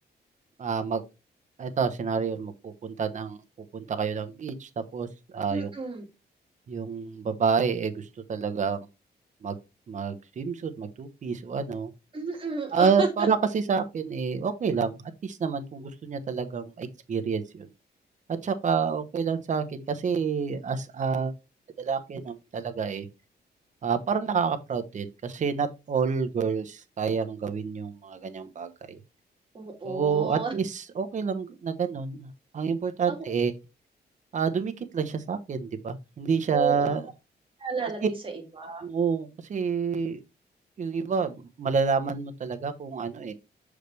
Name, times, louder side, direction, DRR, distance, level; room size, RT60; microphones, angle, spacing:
voice 1, 0.6-1.0 1.6-3.4 3.7-5.1 5.3-5.7 6.7-8.8 9.4-9.6 9.9-11.9 12.7-14.9 15.2-17.7 18.4-21.3 21.8-23.1 23.8-29.0 29.8-33.5 34.3-37.0 38.8-40.2 40.8-43.3, right 5 dB, 45° right, 0.9 m, -28 dB
voice 2, 5.5-6.1 12.1-13.3 29.5-30.5 33.1-33.2 36.5-37.0 37.6-38.9, right 4 dB, 30° right, 2.4 m, -32 dB
6.6 x 4.9 x 3.3 m
wide cardioid pair, 140°, 17 cm